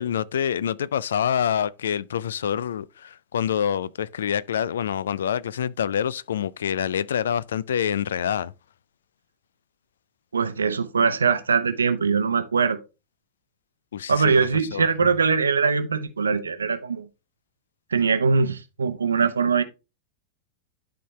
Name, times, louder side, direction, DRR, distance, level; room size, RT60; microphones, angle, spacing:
voice 1, 0.0-8.5 13.9-14.9, left 9 dB, 65° left, 0.3 m, -26 dB
voice 2, 10.3-12.8 14.1-17.1 17.9-19.6, right 5 dB, 75° right, 0.8 m, -22 dB
11.5 x 4.0 x 3.2 m
figure-of-eight pair, 90°, 0 cm